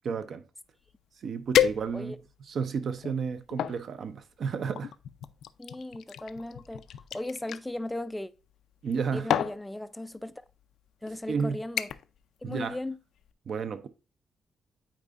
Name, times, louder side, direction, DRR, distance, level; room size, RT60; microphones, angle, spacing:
voice 1, 0.0-0.5 1.2-2.1 2.4-4.9 8.8-9.3 11.3-11.6 12.4-12.8 13.5-13.9, right 6 dB, 50° right, 0.6 m, -32 dB
sound 1, 0.9-1.0 1.5-2.3 2.9-3.8 4.7-7.6 8.7-9.0 9.3-9.6 10.5-10.6 11.1-11.3 11.8-12.2 12.5-12.8 13.2-13.3, left 10 dB, 75° left, 0.4 m, -30 dB
voice 2, 5.6-6.9 7.1-8.3 9.1-10.4 11.0-11.9 12.4-13.0, left 1 dB, 5° left, 0.3 m, -36 dB
8.6 x 4.5 x 2.4 m
wide cardioid pair, 180°, 0 cm